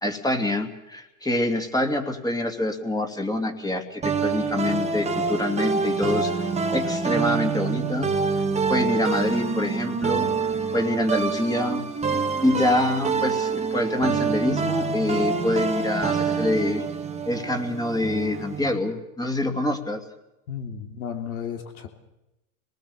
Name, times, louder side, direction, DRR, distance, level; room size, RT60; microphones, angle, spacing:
voice 1, 0.0-8.1 8.4-11.9 12.4-16.8 17.3-20.0, left 1 dB, 10° left, 5 dB, 2.6 m, -26 dB
sound 1, 4.0-18.7, right 5 dB, 15° right, 1.6 m, -26 dB
voice 2, 20.5-21.9, left 8 dB, 75° left, 6 dB, 3.4 m, -33 dB
26.5 x 19.5 x 7.0 m, 0.95 s
hypercardioid pair, 110°, 43 cm